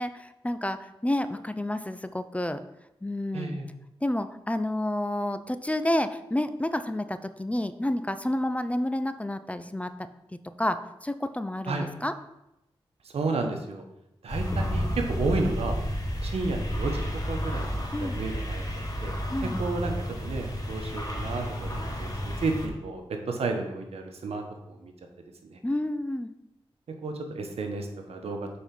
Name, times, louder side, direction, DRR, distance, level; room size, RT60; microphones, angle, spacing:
voice 1, 0.0-2.6 3.0-3.6 4.0-10.1 10.6-12.1 17.9-18.2 19.3-19.6 25.6-26.3, left 1 dB, 15° left, 11 dB, 0.5 m, -30 dB
voice 2, 3.3-3.7 11.7-11.9 13.1-13.8 14.2-15.7 16.2-18.6 19.0-19.1 19.4-24.9 25.4-25.6 27.0-28.4, right 3 dB, 85° right, 4 dB, 1.1 m, -32 dB
sound 1, 14.3-22.7, equal, 35° left, 1.9 m, -31 dB
7.1 x 4.4 x 5.2 m, 0.89 s
cardioid pair, 50°, 10 cm